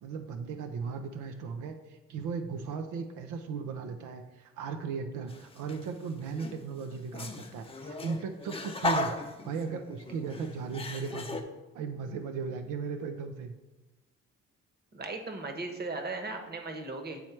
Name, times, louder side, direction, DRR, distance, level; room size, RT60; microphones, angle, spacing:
voice 1, 0.0-9.1 9.4-11.4 11.7-13.5, right 5 dB, 85° right, 6 dB, 0.6 m, -36 dB
sound 1, 5.3-5.9 6.3-11.4, left 2 dB, 20° left, 0.6 m, -36 dB
voice 2, 14.9-17.2, right 3 dB, 35° right, 5 dB, 1.1 m, -37 dB
8.6 x 3.2 x 4.5 m, 1.1 s
cardioid pair, 90°, 30 cm